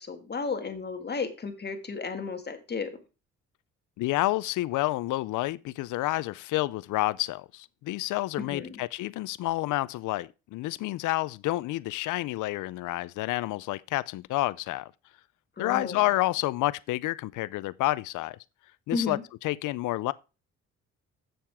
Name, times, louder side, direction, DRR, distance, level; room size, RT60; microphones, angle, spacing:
voice 1, 0.0-2.9 8.4-8.8 15.6-16.0 18.9-19.2, left 4 dB, 35° left, 1.9 m, -33 dB
voice 2, 4.0-14.9 15.6-18.4 18.9-19.2 19.4-20.1, left 18 dB, 85° left, 0.5 m, -29 dB
7.6 x 7.0 x 4.8 m
cardioid pair, 90°, 30 cm